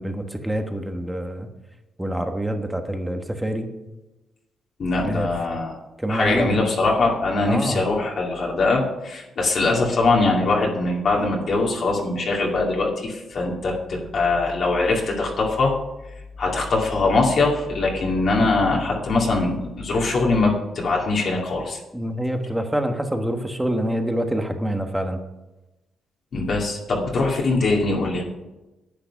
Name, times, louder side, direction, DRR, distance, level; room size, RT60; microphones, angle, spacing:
voice 1, 0.0-1.5 2.0-3.7 5.0-5.3 6.0-6.5 7.5-7.8 18.4-18.5 21.9-25.2, right 1 dB, 5° right, 5 dB, 1.4 m, -26 dB
voice 2, 4.8-5.7 6.1-15.7 16.4-21.8 26.3-28.2, left 3 dB, 50° left, -2 dB, 2.3 m, -22 dB
10.5 x 9.0 x 5.9 m, 1.0 s
cardioid pair, 125°, 0 cm